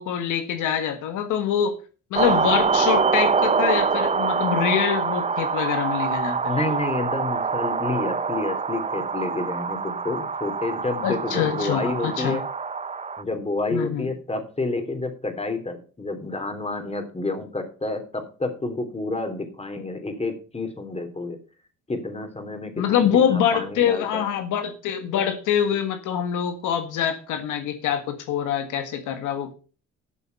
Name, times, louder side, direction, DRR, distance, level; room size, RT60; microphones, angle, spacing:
voice 1, 0.0-1.8 2.1-6.5 11.0-12.4 13.7-14.1 22.8-29.5, left 9 dB, 90° left, 8 dB, 1.6 m, -24 dB
sound 1, 2.1-13.2, right 5 dB, 25° right, 0.7 m, -25 dB
voice 2, 6.5-12.4 13.2-21.4 21.9-24.3, left 2 dB, 20° left, 7 dB, 3.3 m, -29 dB
13.0 x 7.0 x 5.5 m, 0.37 s
cardioid pair, 90°, 30 cm